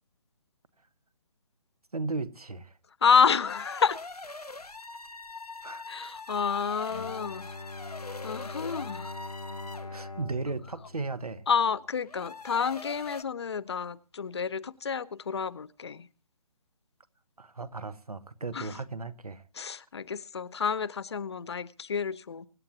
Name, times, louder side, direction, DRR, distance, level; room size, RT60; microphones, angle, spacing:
voice 1, 1.9-2.8 5.6-5.8 9.9-11.5 17.4-19.7, right 3 dB, 80° right, 1.2 m, -36 dB
voice 2, 3.0-4.0 5.9-7.4 8.2-9.1 11.5-16.1 18.5-18.8 19.5-22.5, left 6 dB, 45° left, 0.7 m, -29 dB
sound 1, 3.5-10.0 12.0-13.2, left 3 dB, 85° left, 0.9 m, -43 dB
Bowed string instrument, 6.9-11.8, left 3 dB, 65° left, 1.4 m, -42 dB
24.0 x 9.5 x 2.8 m
figure-of-eight pair, 140°, 19 cm